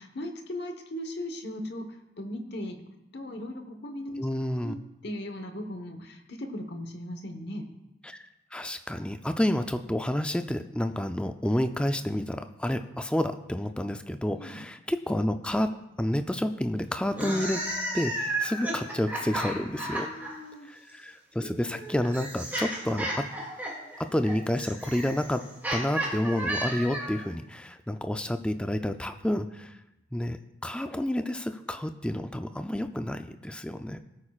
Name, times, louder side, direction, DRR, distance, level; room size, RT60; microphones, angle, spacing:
voice 1, 0.0-2.8 3.1-4.2 4.6-4.8 5.0-7.6 14.4-14.6 19.8-20.7, left 1 dB, 60° left, 5 dB, 1.2 m, -38 dB
voice 2, 4.2-4.8 8.0-17.6 17.9-20.1 20.7-23.3 24.0-29.8 30.1-34.0, left 1 dB, 5° left, 8 dB, 0.4 m, -30 dB
sound 1, 17.1-20.3 21.4-27.2, right 1 dB, 10° right, 2.5 m, -33 dB
18.0 x 8.6 x 2.4 m, 0.92 s
head